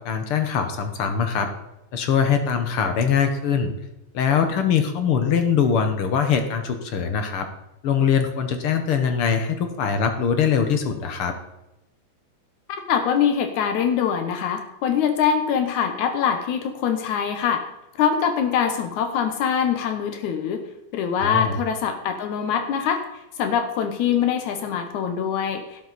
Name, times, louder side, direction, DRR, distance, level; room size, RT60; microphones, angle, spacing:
voice 1, 0.0-1.5 1.9-3.7 4.1-7.5 7.8-11.3 21.2-21.6, left 7 dB, 60° left, 7 dB, 1.7 m, -22 dB
voice 2, 12.9-17.6 18.0-20.6 20.9-23.0 23.4-25.8, left 7 dB, 85° left, 7 dB, 2.5 m, -23 dB
12.0 x 11.5 x 4.1 m, 0.90 s
omnidirectional pair, 3.3 m